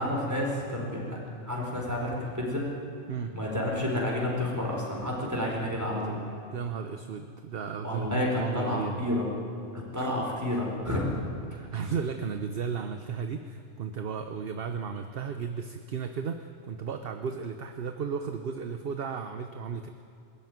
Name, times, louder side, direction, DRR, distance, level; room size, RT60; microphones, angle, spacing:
voice 1, 0.0-2.7 3.3-6.2 7.8-9.3 9.7-11.2, left 1 dB, 10° right, -2 dB, 4.4 m, -30 dB
voice 2, 6.5-9.0 10.0-10.1 10.5-10.6 11.5-19.9, right 6 dB, 50° right, 7 dB, 1.0 m, -34 dB
22.0 x 13.5 x 9.4 m, 2.5 s
omnidirectional pair, 1.4 m